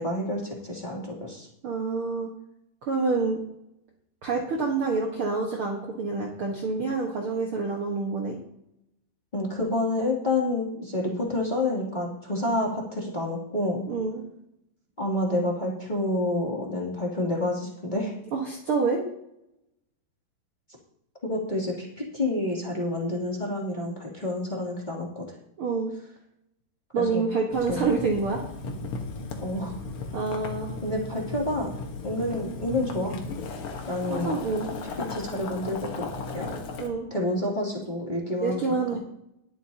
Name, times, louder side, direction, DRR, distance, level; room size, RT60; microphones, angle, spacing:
voice 1, 0.0-1.5 9.3-13.8 15.0-18.1 21.2-21.9 22.1-25.2 26.9-27.2 27.7-27.9 29.4-29.7 30.8-31.7 32.0-33.2 33.9-34.4 35.1-36.0 36.3-36.6 37.1-39.0, left 1 dB, 15° left, -4 dB, 2.2 m, -28 dB
voice 2, 1.6-2.3 2.8-3.4 4.2-8.4 13.9-14.2 18.3-19.0 25.6-25.9 26.9-28.4 30.1-30.7 34.1-34.7 36.8-37.1 38.4-39.0, right 4 dB, 75° right, -1 dB, 1.2 m, -27 dB
Boiling, 27.5-36.9, left 4 dB, 70° left, 1.3 m, -36 dB
20.5 x 8.3 x 2.9 m, 0.80 s
omnidirectional pair, 4.7 m